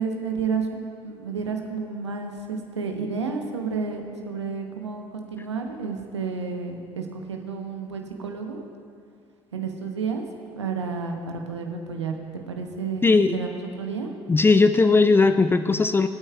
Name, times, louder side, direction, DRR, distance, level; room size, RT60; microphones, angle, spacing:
voice 1, 0.0-8.6 9.5-10.2 10.5-12.2 12.5-14.1, right 5 dB, 85° right, 3 dB, 0.9 m, -31 dB
voice 2, 13.0-13.3 14.3-16.1, left 3 dB, 15° left, 10 dB, 0.4 m, -18 dB
23.5 x 8.7 x 2.3 m, 2.3 s
figure-of-eight pair, 55°, 14 cm